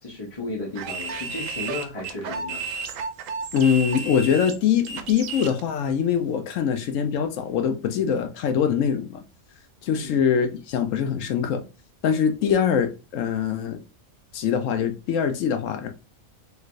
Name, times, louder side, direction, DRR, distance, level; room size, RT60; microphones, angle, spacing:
voice 1, 0.0-2.6 9.9-10.2, left 2 dB, 30° left, 0.7 m, -34 dB
sound 1, 0.8-5.6, right 4 dB, 70° right, 0.9 m, -33 dB
voice 2, 3.5-9.2 9.8-11.6 12.0-13.8 14.3-15.9, left 7 dB, 70° left, 0.9 m, -23 dB
3.2 x 3.2 x 2.5 m
omnidirectional pair, 1.4 m